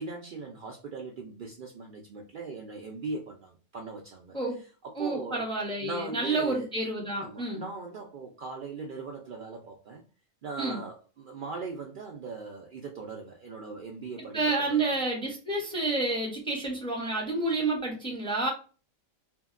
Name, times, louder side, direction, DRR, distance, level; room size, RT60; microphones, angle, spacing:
voice 1, 0.0-4.4 4.8-5.5 5.8-6.7 7.2-10.0 10.4-14.9, right 4 dB, 85° right, 0.4 m, -39 dB
voice 2, 5.0-7.6 10.6-10.8 14.3-18.5, right 2 dB, 5° left, 0.5 m, -29 dB
2.8 x 2.7 x 2.4 m
omnidirectional pair, 1.4 m